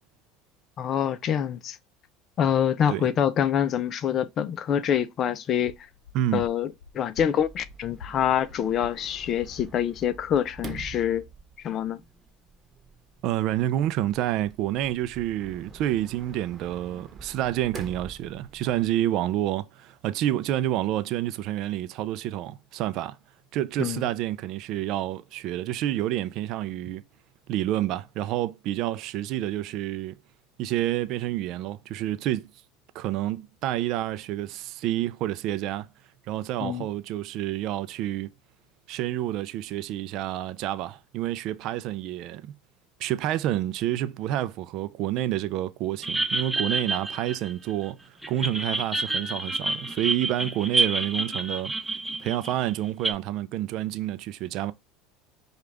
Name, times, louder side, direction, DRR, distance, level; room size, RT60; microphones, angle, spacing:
voice 1, 0.8-1.8 2.4-5.7 6.3-11.2 11.6-12.0 23.8-24.0 36.6-36.9, left 9 dB, 45° left, 0.5 m, -26 dB
sound 1, 5.6-10.8, left 6 dB, 75° left, 0.8 m, -48 dB
Sliding door, 7.4-18.9, right 3 dB, 25° right, 1.1 m, -46 dB
voice 2, 13.2-23.2 23.5-27.0 27.5-30.1 30.6-32.5 32.9-35.9 36.3-38.3 38.9-42.5 43.0-48.0 48.3-51.7 52.2-54.7, right 13 dB, 60° right, 0.4 m, -28 dB
sound 2, 46.0-47.9 48.2-53.1, right 2 dB, 5° right, 0.7 m, -28 dB
5.1 x 2.4 x 3.3 m
supercardioid pair, 100°, 0 cm